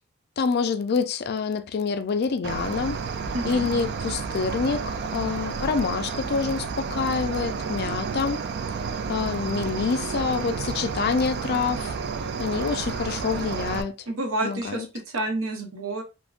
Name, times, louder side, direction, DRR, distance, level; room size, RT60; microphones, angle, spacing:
voice 1, 0.4-3.0 3.4-8.4 9.1-11.9 12.4-13.9 14.4-14.9, left 5 dB, 50° left, 0.4 m, -26 dB
Cricket, 2.4-13.8, right 5 dB, 50° right, 0.3 m, -31 dB
voice 2, 3.3-3.7 14.1-14.9 15.1-16.0, right 2 dB, 75° right, 0.8 m, -29 dB
3.5 x 2.0 x 2.4 m
head